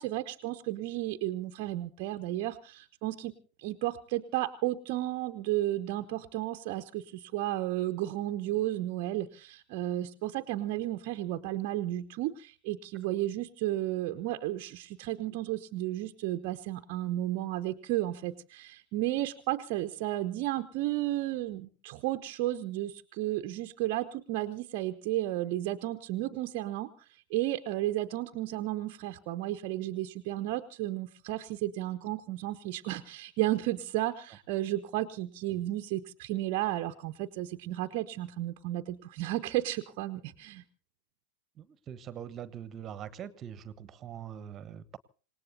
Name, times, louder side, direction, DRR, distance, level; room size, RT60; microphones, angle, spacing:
voice 1, 0.0-3.3 3.6-40.6, right 15 dB, 45° right, 8 dB, 0.8 m, -33 dB
voice 2, 41.6-45.0, right 9 dB, 30° right, 18 dB, 1.1 m, -43 dB
27.0 x 18.5 x 2.7 m, 0.37 s
figure-of-eight pair, 90°, 0 cm